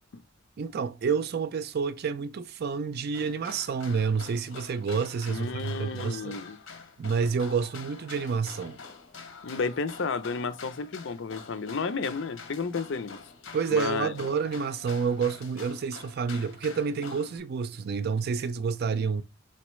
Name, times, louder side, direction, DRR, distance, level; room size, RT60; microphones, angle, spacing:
voice 1, 0.6-6.4 7.0-8.8 13.5-19.2, right 5 dB, 55° right, 0.4 m, -29 dB
sound 1, 3.1-17.4, left 5 dB, 80° left, 1.0 m, -46 dB
voice 2, 5.3-6.6 9.4-13.2 13.4-14.1, left 4 dB, 65° left, 0.5 m, -32 dB
4.3 x 4.0 x 3.1 m
head